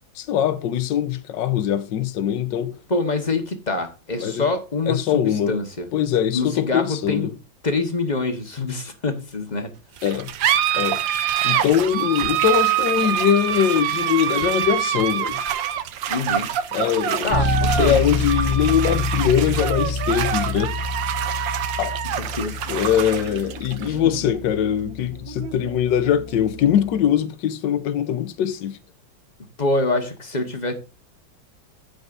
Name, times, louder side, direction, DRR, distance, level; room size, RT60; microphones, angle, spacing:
voice 1, 0.2-2.7 4.2-4.4 4.9-5.5 5.9-7.3 10.0-10.3 10.7-11.0 11.4-15.4 16.7-20.8 21.8-21.9 22.7-28.8, left 9 dB, 70° left, 1.5 m, -22 dB
voice 2, 2.9-5.9 6.3-7.3 7.6-9.7 16.1-16.5 17.2-18.0 22.2-22.6 23.8-24.1 29.6-30.7, left 3 dB, 25° left, 1.2 m, -25 dB
sound 1, 10.0-27.0, right 10 dB, 75° right, 1.5 m, -26 dB
Bass guitar, 17.3-27.0, left 3 dB, 50° left, 1.7 m, -28 dB
14.5 x 5.3 x 2.6 m
omnidirectional pair, 2.1 m